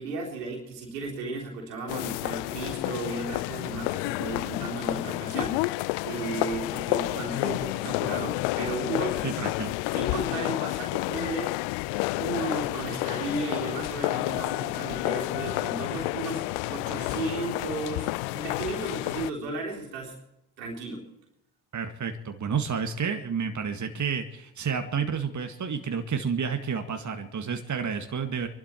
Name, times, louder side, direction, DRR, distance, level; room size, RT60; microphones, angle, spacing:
voice 1, 0.0-9.2 9.9-11.6 12.1-16.4 16.7-20.2 20.6-21.0, right 3 dB, 90° right, -1 dB, 3.6 m, -34 dB
sound 1, 1.9-19.3, left 22 dB, 70° left, 0.5 m, -30 dB
voice 2, 9.2-9.8 21.7-28.5, right 6 dB, 35° right, 6 dB, 1.8 m, -30 dB
24.5 x 12.0 x 4.4 m, 0.87 s
hypercardioid pair, 50°, 48 cm